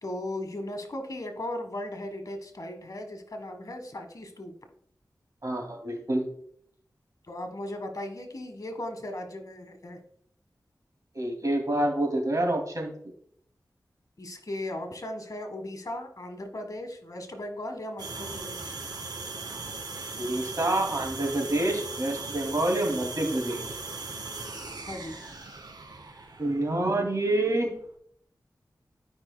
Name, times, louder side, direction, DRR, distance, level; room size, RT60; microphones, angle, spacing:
voice 1, 0.0-4.5 7.3-10.0 14.2-18.8 24.9-25.2, left 1 dB, 55° left, 6 dB, 1.4 m, -37 dB
voice 2, 5.4-6.2 11.1-12.9 20.2-23.6 26.4-27.7, right 1 dB, 50° right, 1 dB, 2.4 m, -27 dB
sound 1, 18.0-27.8, right 3 dB, 80° right, 1.7 m, -39 dB
12.5 x 5.5 x 2.2 m, 0.65 s
wide cardioid pair, 60°, 7 cm